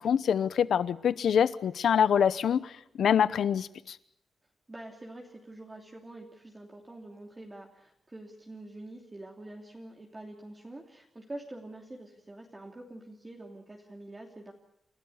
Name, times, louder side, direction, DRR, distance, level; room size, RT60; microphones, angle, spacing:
voice 1, 0.0-2.7 3.0-4.0, left 8 dB, 75° left, 0.9 m, -25 dB
voice 2, 4.7-14.5, right 1 dB, 20° right, 3.0 m, -46 dB
29.5 x 13.0 x 9.6 m
cardioid pair, 100°, 0 cm